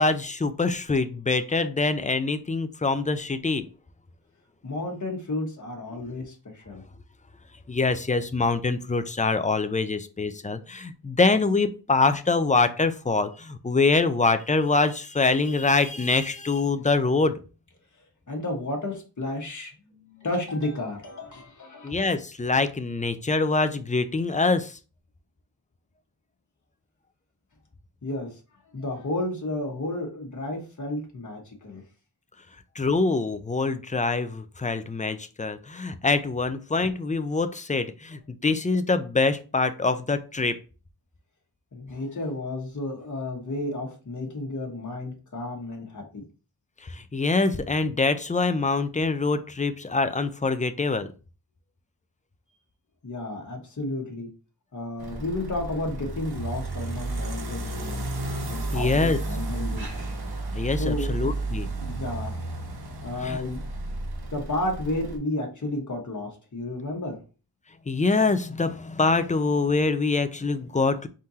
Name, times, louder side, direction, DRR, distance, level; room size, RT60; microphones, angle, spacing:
voice 1, 0.0-3.7 7.7-17.4 21.8-24.8 32.8-40.6 46.8-51.1 58.7-59.2 60.5-61.7 63.2-63.4 67.9-71.1, left 3 dB, 20° left, 11 dB, 0.4 m, -24 dB
voice 2, 4.6-6.8 10.4-10.5 18.3-22.0 28.0-28.4 28.7-31.8 41.7-46.2 53.0-54.3 54.7-58.0 58.5-59.9 60.8-61.1 61.8-62.4 63.0-63.6 64.3-67.2, left 2 dB, 50° left, 1 dB, 1.3 m, -32 dB
sound 1, 55.0-65.2, right 2 dB, 70° right, 1.0 m, -32 dB
4.3 x 3.7 x 2.7 m, 0.34 s
wide cardioid pair, 85°, 39 cm